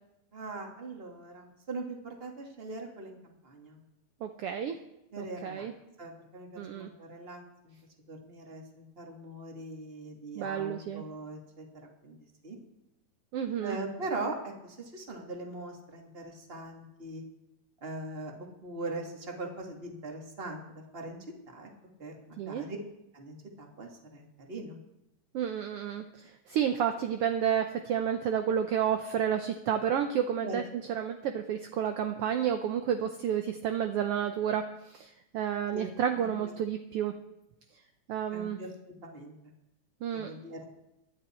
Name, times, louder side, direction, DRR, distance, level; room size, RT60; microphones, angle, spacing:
voice 1, 0.3-3.8 5.1-5.7 6.0-7.7 8.1-11.6 12.0-12.2 12.4-12.6 13.6-17.2 17.8-18.3 18.6-21.2 21.5-21.7 22.0-22.8 23.1-24.8 30.4-30.6 35.7-35.9 36.2-36.5 38.3-39.4 40.1-40.8, right 2 dB, 20° right, 1 dB, 1.9 m, -41 dB
voice 2, 4.2-4.8 5.2-5.7 6.6-6.9 10.4-11.0 13.3-13.8 22.4-22.6 25.3-37.2 38.1-38.6 40.0-40.3, right 9 dB, 70° right, 6 dB, 1.4 m, -31 dB
24.5 x 10.0 x 4.4 m, 0.90 s
omnidirectional pair, 3.4 m